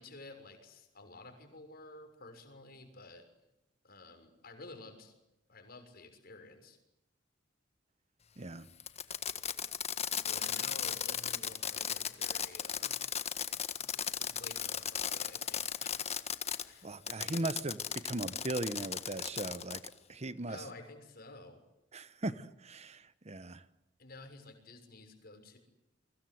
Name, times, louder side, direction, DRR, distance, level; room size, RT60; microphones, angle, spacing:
voice 1, 0.0-3.3 3.8-5.1 5.5-6.8 10.2-13.0 13.8-16.2 16.6-17.5 20.5-21.6 24.0-25.6, left 2 dB, 55° left, 6 dB, 6.5 m, -52 dB
Fireworks, 8.8-16.6 17.1-19.9, left 8 dB, 35° left, 1.5 m, -36 dB
voice 2, 16.8-17.8 18.0-19.8 20.1-20.6 21.9-23.6, right 2 dB, 35° right, 13 dB, 1.1 m, -38 dB
29.5 x 24.0 x 8.0 m, 0.89 s
head